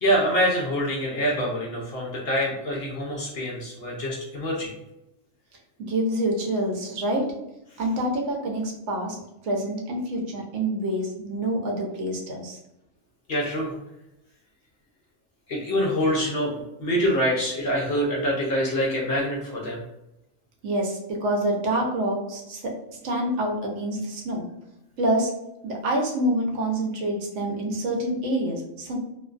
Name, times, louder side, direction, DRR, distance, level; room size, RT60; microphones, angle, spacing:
voice 1, 0.0-4.7 13.3-13.7 15.5-16.5 16.8-19.8, equal, 65° left, -2 dB, 0.6 m, -25 dB
voice 2, 5.9-7.2 7.8-9.2 9.4-12.6 20.6-22.6 23.0-24.4 25.0-25.3 25.6-29.0, right 1 dB, 70° right, 0 dB, 0.9 m, -26 dB
2.5 x 2.2 x 2.4 m, 0.87 s
omnidirectional pair, 1.4 m